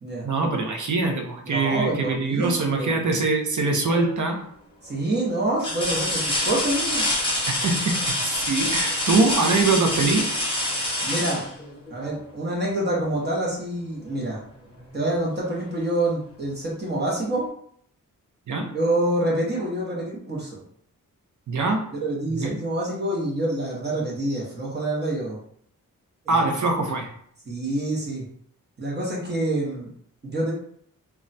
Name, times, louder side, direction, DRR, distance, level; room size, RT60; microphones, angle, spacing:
voice 1, 0.2-4.4 7.5-10.3 18.5-18.7 21.5-21.8 22.3-22.6 26.3-27.1, right 3 dB, 60° right, 3 dB, 0.6 m, -23 dB
voice 2, 1.4-3.2 4.8-7.0 11.0-11.4 11.9-14.4 14.9-17.5 18.7-20.6 22.0-25.4 26.3-26.4 27.5-28.2 28.8-29.9 30.2-30.5, right 1 dB, 30° right, -4 dB, 0.8 m, -27 dB
sound 1, 3.8-4.3 4.9-5.0 5.6-12.3 14.1-14.2 14.7-15.7 17.0-17.1, left 1 dB, 15° left, 0.8 m, -26 dB
2.3 x 2.2 x 3.9 m, 0.65 s
wide cardioid pair, 140°, 33 cm